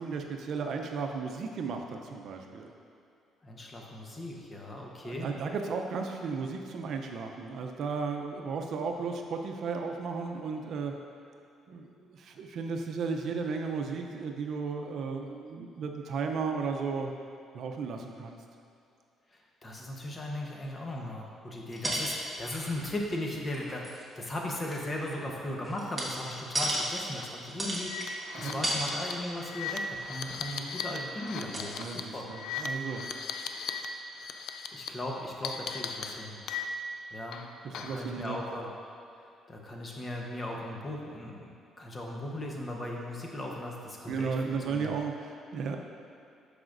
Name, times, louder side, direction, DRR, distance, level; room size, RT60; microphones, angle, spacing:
voice 1, 0.0-2.7 5.0-10.9 11.7-17.1 17.5-18.4 28.3-28.6 31.8-33.1 37.3-38.4 44.1-45.8, right 5 dB, 65° right, 3 dB, 0.6 m, -34 dB
voice 2, 3.4-5.3 19.6-32.3 34.7-36.4 37.1-37.4 37.7-38.7 39.5-44.4 44.7-44.9, left 1 dB, 25° left, -1 dB, 1.0 m, -37 dB
sound 1, 21.7-23.0 23.3-24.0 24.5-26.9 27.5-28.1 28.4-28.9 29.1-29.4 29.7-30.5 31.3-31.4 31.5-31.6, right 1 dB, 10° right, 1.3 m, -34 dB
sound 2, 26.6-26.8 27.1-27.2 27.8-33.9 34.1-34.9 35.4-37.0 37.3-38.1, left 6 dB, 75° left, 0.4 m, -38 dB
12.0 x 5.0 x 2.6 m, 2.6 s
cardioid pair, 115°, 0 cm